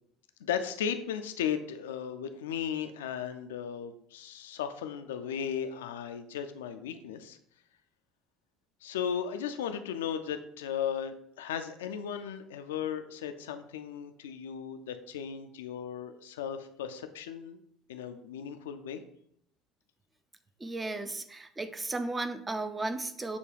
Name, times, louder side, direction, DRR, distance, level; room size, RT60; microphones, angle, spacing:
voice 1, 0.4-7.4 8.8-17.6 17.9-19.0, left 8 dB, 75° left, 8 dB, 0.3 m, -36 dB
voice 2, 20.6-23.4, right 2 dB, 20° right, 10 dB, 0.5 m, -35 dB
6.7 x 2.3 x 3.3 m, 0.70 s
figure-of-eight pair, 60°, 0 cm